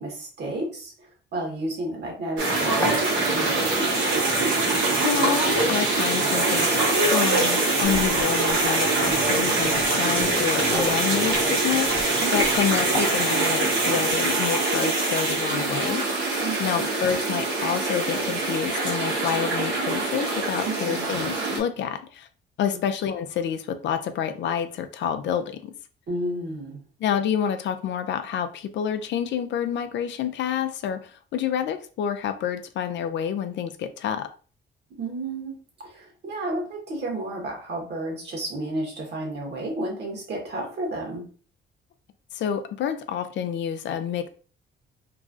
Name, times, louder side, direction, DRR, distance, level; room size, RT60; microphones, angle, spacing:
voice 1, 0.0-3.9 12.2-12.4 16.4-16.8 20.6-21.1 22.7-22.8 26.1-26.8 35.0-41.2, right 1 dB, 60° right, 0 dB, 1.3 m, -32 dB
sound 1, 2.4-14.1, left 1 dB, 10° left, 0.8 m, -36 dB
sound 2, 2.4-21.6, right 3 dB, 85° right, 1.1 m, -24 dB
voice 2, 5.0-16.0 16.6-22.3 22.6-25.7 27.0-34.3 42.3-44.3, left 8 dB, 65° left, 9 dB, 0.4 m, -28 dB
Walk footsteps, 7.8-13.2, left 1 dB, 45° left, 1.0 m, -38 dB
3.0 x 2.4 x 2.5 m, 0.40 s
cardioid pair, 90°, 20 cm